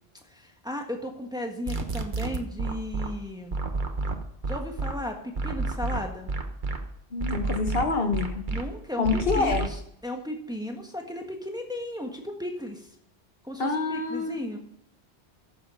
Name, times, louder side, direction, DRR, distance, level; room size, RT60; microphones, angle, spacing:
voice 1, 0.2-3.6 4.4-6.3 8.5-9.8 10.0-12.9 13.4-14.6, left 1 dB, 5° right, 2 dB, 1.4 m, -35 dB
sound 1, 1.7-3.1 3.5-4.9 5.4-6.8 7.2-8.6 9.0-9.7, right 3 dB, 50° right, 1.3 m, -29 dB
voice 2, 7.1-8.4 9.0-9.7 13.6-14.6, left 4 dB, 65° left, 5 dB, 1.6 m, -27 dB
13.0 x 7.3 x 5.6 m, 0.72 s
omnidirectional pair, 1.1 m